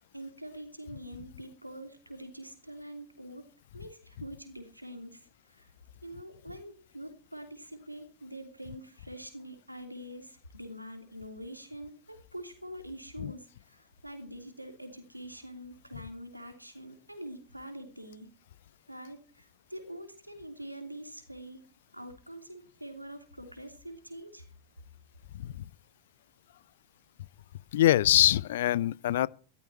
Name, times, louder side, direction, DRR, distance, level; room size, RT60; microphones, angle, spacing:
voice 1, 0.0-3.5 3.7-5.7 6.0-18.3 18.9-21.6 21.9-24.5, right 1 dB, 85° right, 2.9 m, -45 dB
voice 2, 25.3-25.7 27.7-29.3, left 13 dB, 55° left, 0.5 m, -24 dB
14.0 x 12.5 x 4.4 m
figure-of-eight pair, 90°, 0 cm